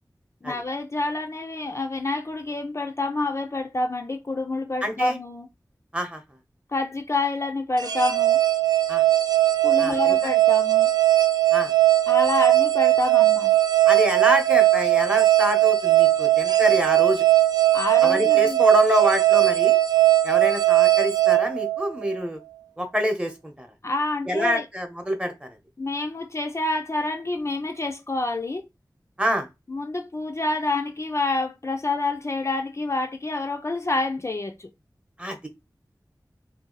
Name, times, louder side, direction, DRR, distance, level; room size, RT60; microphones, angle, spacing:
voice 1, 0.4-5.5 6.7-8.4 9.6-10.9 12.1-13.6 17.7-18.6 23.8-24.6 25.8-28.7 29.7-34.7, left 2 dB, 40° left, 0.4 m, -28 dB
voice 2, 4.8-5.2 5.9-6.2 8.9-9.0 9.8-10.2 11.5-11.7 13.8-17.2 18.0-19.8 20.2-22.4 22.8-23.7 24.3-25.5 29.2-29.5 35.2-35.4, equal, 15° right, 0.9 m, -26 dB
sound 1, 7.8-22.2, right 15 dB, 65° right, 0.5 m, -19 dB
2.7 x 2.3 x 3.8 m
wide cardioid pair, 60°, 7 cm